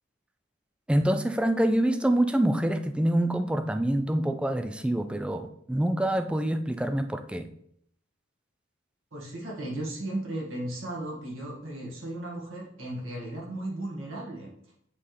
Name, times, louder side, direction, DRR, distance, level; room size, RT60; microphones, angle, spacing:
voice 1, 0.9-7.5, right 1 dB, 5° right, 8 dB, 0.3 m, -26 dB
voice 2, 9.1-14.5, right 1 dB, 75° right, -3 dB, 1.9 m, -35 dB
7.6 x 4.0 x 3.3 m, 0.72 s
head